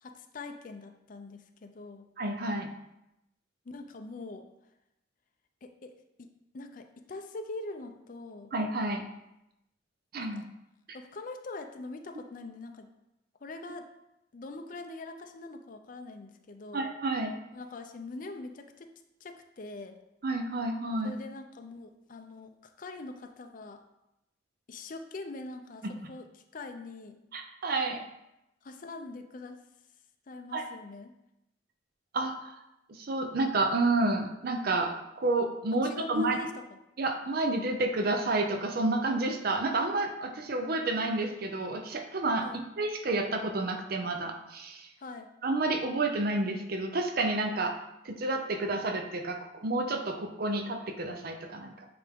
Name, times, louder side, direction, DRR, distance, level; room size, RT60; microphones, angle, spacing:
voice 1, 0.0-2.1 3.7-4.5 5.6-5.9 6.2-8.5 10.2-10.4 10.9-12.9 13.4-13.9 14.3-16.8 17.5-20.0 21.0-23.8 24.7-27.2 28.6-29.6 30.3-31.1 35.8-36.6 42.4-42.6 45.0-45.3, left 2 dB, 45° left, 6 dB, 0.5 m, -43 dB
voice 2, 2.2-2.7 8.5-9.0 10.1-10.4 16.7-17.3 20.2-21.2 27.3-28.0 30.5-30.6 32.1-32.6 32.9-36.4 37.0-42.5 42.8-44.9 45.4-47.7 48.0-51.9, right 2 dB, 55° right, 5 dB, 0.6 m, -30 dB
8.7 x 3.4 x 3.6 m, 0.88 s
head